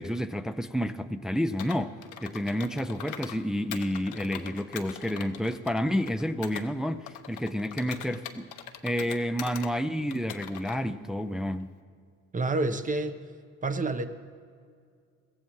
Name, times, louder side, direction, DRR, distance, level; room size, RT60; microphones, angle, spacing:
voice 1, 0.0-1.9 2.2-8.5 8.8-11.7, equal, ahead, 8 dB, 0.5 m, -30 dB
Computer keyboard, 1.6-3.4 3.7-6.7 7.1-9.7 10.1-10.8, left 9 dB, 80° left, 1.0 m, -42 dB
voice 2, 12.3-13.2 13.6-14.1, right 2 dB, 25° right, 9 dB, 0.9 m, -28 dB
22.5 x 15.5 x 3.1 m, 2.2 s
cardioid pair, 90°, 30 cm